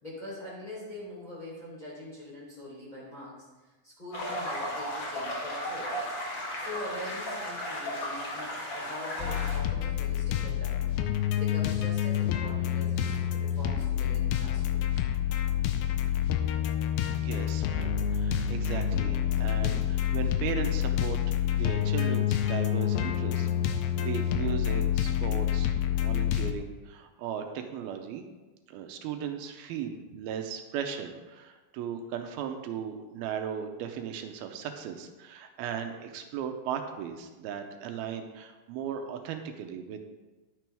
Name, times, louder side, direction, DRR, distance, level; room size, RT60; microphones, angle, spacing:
voice 1, 0.0-3.5 3.8-6.0 6.5-11.0 11.4-14.9, left 1 dB, 10° left, -7 dB, 3.3 m, -43 dB
sound 1, 4.1-9.6, equal, 40° left, 2.0 m, -35 dB
sound 2, 9.2-26.5, left 10 dB, 85° left, 2.5 m, -28 dB
voice 2, 17.2-23.5 24.0-28.3 28.7-40.0, right 8 dB, 85° right, 5 dB, 2.6 m, -37 dB
12.0 x 9.2 x 3.5 m, 1.2 s
omnidirectional pair, 4.3 m